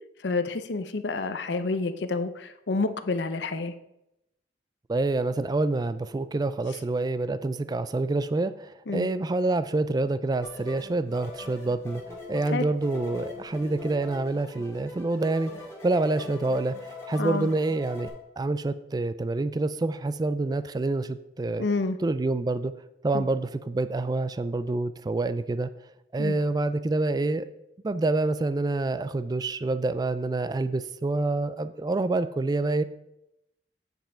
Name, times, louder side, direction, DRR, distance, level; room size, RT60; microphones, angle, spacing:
voice 1, 0.2-3.7 8.9-9.1 12.5-12.7 17.2-17.5 21.6-22.0 23.1-23.2 26.2-26.4, left 3 dB, 70° left, 10 dB, 0.6 m, -29 dB
voice 2, 4.9-12.0 12.3-15.5 15.8-21.7 22.0-22.7 23.0-25.7 26.1-27.5 27.8-32.8, right 2 dB, 20° right, 13 dB, 0.3 m, -27 dB
sound 1, 10.4-18.1, left 3 dB, 15° left, 1.9 m, -42 dB
9.1 x 5.4 x 4.3 m, 0.86 s
head